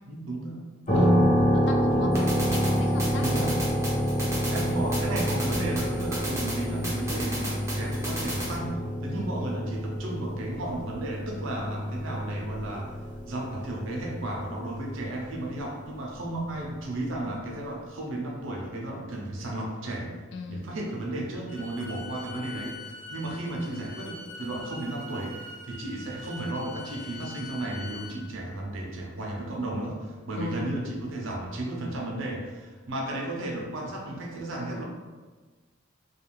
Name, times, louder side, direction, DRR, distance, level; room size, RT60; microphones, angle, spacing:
voice 1, 0.1-1.2 3.2-3.6 4.5-12.9 13.3-20.2 20.5-34.8, right 1 dB, 75° right, -1 dB, 0.5 m, -34 dB
voice 2, 0.9-2.2 2.5-3.5 20.3-20.7 30.4-30.7, left 3 dB, 60° left, 3 dB, 0.3 m, -36 dB
sound 1, 0.9-15.5, equal, 30° left, 0.7 m, -28 dB
sound 2, 2.1-8.6, right 1 dB, 15° right, 0.5 m, -35 dB
Bowed string instrument, 21.5-28.2, left 2 dB, 75° left, 0.8 m, -43 dB
2.4 x 2.3 x 3.0 m, 1.3 s
head